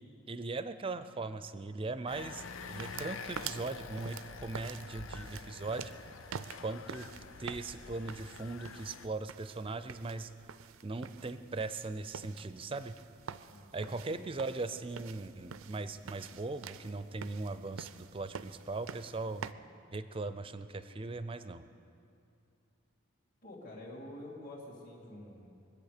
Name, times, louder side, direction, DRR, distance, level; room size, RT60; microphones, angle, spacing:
voice 1, 0.0-5.9 6.6-7.1 7.4-10.3 10.8-13.0 13.7-19.4 19.9-21.6, right 3 dB, 25° right, 12 dB, 0.5 m, -39 dB
sound 1, 2.1-9.1, left 5 dB, 70° left, 0.6 m, -47 dB
sound 2, 2.6-19.5, right 7 dB, 80° right, 0.5 m, -48 dB
voice 2, 13.5-14.3 23.4-25.5, left 1 dB, 45° left, -7 dB, 2.4 m, -48 dB
23.0 x 8.5 x 6.7 m, 2.6 s
head